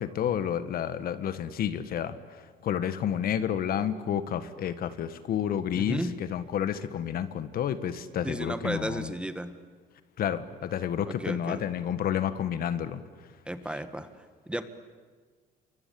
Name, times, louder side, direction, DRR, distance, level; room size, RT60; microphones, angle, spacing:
voice 1, 0.0-2.2 2.6-9.1 10.2-13.0, left 9 dB, 60° left, 12 dB, 1.6 m, -30 dB
voice 2, 5.7-6.2 8.2-9.6 11.1-11.6 13.5-14.6, right 1 dB, 5° right, 10 dB, 1.7 m, -34 dB
28.0 x 24.5 x 8.6 m, 1.5 s
cardioid pair, 110°, 17 cm